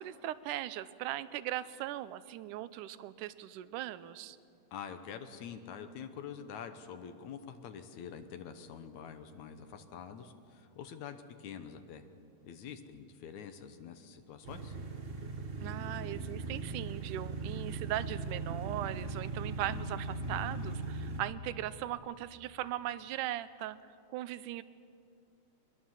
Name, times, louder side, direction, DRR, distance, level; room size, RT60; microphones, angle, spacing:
voice 1, 0.0-4.4 15.6-23.8 24.1-24.6, right 13 dB, 85° right, 15 dB, 2.2 m, -39 dB
voice 2, 4.7-12.0 12.4-14.8, left 7 dB, 70° left, 8 dB, 2.3 m, -46 dB
sound 1, 14.4-21.2, right 3 dB, 60° right, 0.6 m, -39 dB
22.0 x 21.0 x 7.3 m, 2.4 s
omnidirectional pair, 3.6 m